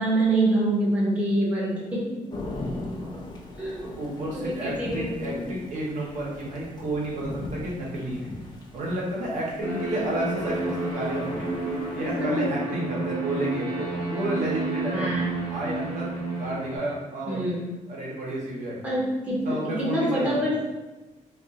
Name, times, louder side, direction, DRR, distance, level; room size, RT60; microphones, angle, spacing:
voice 1, 0.0-2.2 3.6-3.8 4.2-5.5 9.9-10.0 11.9-12.5 14.9-15.3 17.3-17.6 18.8-20.6, right 1 dB, 10° right, -6 dB, 0.6 m, -26 dB
Thunder / Rain, 2.3-12.2, left 2 dB, 30° left, 0.4 m, -40 dB
voice 2, 2.4-3.1 3.8-8.3 8.7-11.5 11.9-15.1 15.5-17.5 17.9-18.8 19.4-20.4, right 1 dB, 65° right, -4 dB, 0.9 m, -31 dB
sound 1, 9.6-16.8, right 2 dB, 75° left, 1.0 m, -30 dB
2.4 x 2.3 x 3.8 m, 1.1 s
cardioid pair, 170°, 14 cm